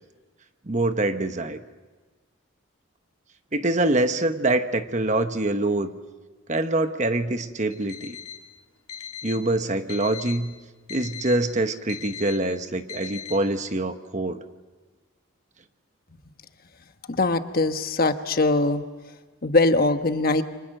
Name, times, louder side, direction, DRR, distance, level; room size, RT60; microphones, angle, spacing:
voice 1, 0.7-1.6 3.5-5.9 6.5-8.2 9.2-10.5 10.9-14.4, right 2 dB, 35° right, 9 dB, 1.1 m, -25 dB
Alarm, 7.7-8.4 8.9-9.4 9.9-10.4 10.9-11.4 11.9-12.4 12.9-13.4, left 8 dB, 90° left, 2.7 m, -38 dB
voice 2, 17.1-18.8 19.4-20.4, left 2 dB, 45° left, 8 dB, 1.2 m, -21 dB
29.0 x 25.5 x 6.6 m, 1.4 s
head